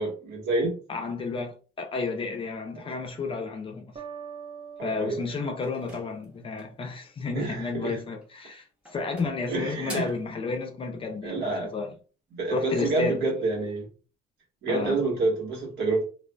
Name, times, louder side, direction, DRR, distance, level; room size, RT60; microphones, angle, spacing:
voice 1, 0.0-0.8 4.8-5.2 7.3-8.0 9.5-10.1 11.2-11.7 12.3-13.9 14.6-16.1, right 3 dB, 70° right, 1.3 m, -28 dB
voice 2, 0.9-3.9 4.8-11.4 11.6-11.9 12.5-13.3 14.7-15.0, left 4 dB, 30° left, 0.6 m, -32 dB
sound 1, 4.0-6.8, right 7 dB, 35° right, 0.6 m, -44 dB
sound 2, 5.6-6.9 8.1-8.5 8.8-10.3, equal, 5° right, 1.0 m, -45 dB
2.4 x 2.4 x 2.2 m
cardioid pair, 110°, 17 cm